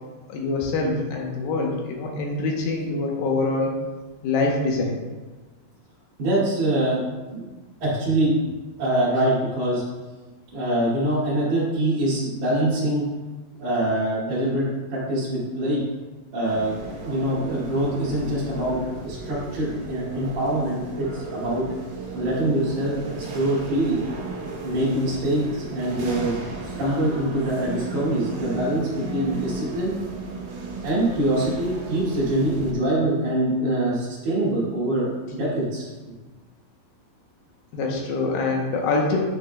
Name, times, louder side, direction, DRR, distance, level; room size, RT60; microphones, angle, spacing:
voice 1, 0.3-3.7 4.2-5.0 37.7-39.2, left 3 dB, 75° left, 0 dB, 2.5 m, -24 dB
voice 2, 6.2-7.0 7.3-7.4 7.8-8.3 8.8-9.8 10.5-13.0 13.6-14.6 14.9-15.8 16.3-21.6 22.1-24.0 24.6-26.4 26.6-29.9 30.8-35.9, right 1 dB, 55° right, -11 dB, 3.4 m, -24 dB
sound 1, 16.4-32.7, right 3 dB, 75° right, 3.1 m, -35 dB
9.2 x 6.5 x 2.2 m, 1.2 s
omnidirectional pair, 4.6 m